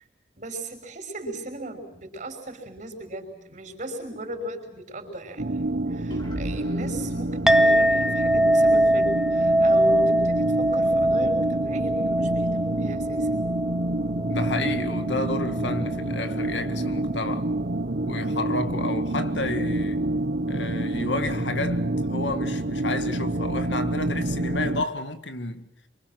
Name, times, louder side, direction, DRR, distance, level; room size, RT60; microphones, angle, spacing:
voice 1, 0.4-5.6 5.9-13.4, right 1 dB, 45° right, 6.0 m, -37 dB
sound 1, 5.4-24.9, right 1 dB, 60° right, 1.2 m, -28 dB
sound 2, 6.1-10.0, equal, 25° left, 4.3 m, -41 dB
Chink clink, 7.5-16.2, right 1 dB, 5° right, 0.8 m, -23 dB
voice 2, 14.3-17.5 18.0-20.0 20.5-25.7, left 2 dB, 80° left, 2.1 m, -31 dB
27.5 x 25.0 x 6.1 m
head